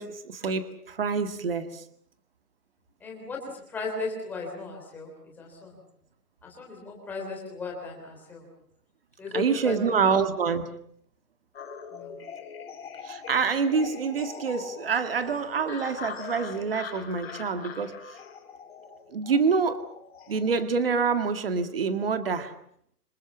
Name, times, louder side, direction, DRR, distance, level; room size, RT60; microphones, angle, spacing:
voice 1, 0.0-1.8 9.3-10.7 13.0-18.2 19.1-19.8 20.3-22.5, right 5 dB, 35° right, 10 dB, 2.0 m, -26 dB
voice 2, 3.0-3.4 3.7-5.1 5.4-5.8 6.4-8.4 9.2-9.8 11.9-12.1, left 3 dB, 5° left, -1 dB, 3.3 m, -36 dB
sound 1, 11.5-20.7, left 6 dB, 40° left, 4.1 m, -42 dB
27.5 x 23.5 x 7.2 m, 0.67 s
hypercardioid pair, 180°, 47 cm